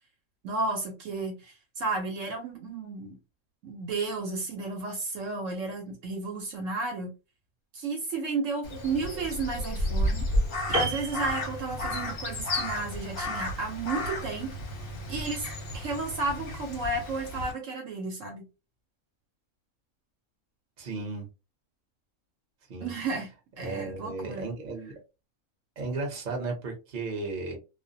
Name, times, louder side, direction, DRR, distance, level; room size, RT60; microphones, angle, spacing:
voice 1, 0.4-3.2 3.6-7.1 7.7-10.3 10.7-14.5 15.1-15.5 15.7-18.4 22.8-23.3 23.6-24.5, right 3 dB, 65° right, 1.0 m, -33 dB
Crow, 8.6-17.5, left 1 dB, 55° left, 0.7 m, -32 dB
Piano, 10.7-12.2 12.5-12.7, right 2 dB, 10° right, 0.9 m, -32 dB
voice 2, 20.8-21.3 22.7-22.9 23.6-24.9 25.8-27.6, right 3 dB, 40° right, 0.8 m, -34 dB
2.4 x 2.0 x 2.6 m
omnidirectional pair, 1.5 m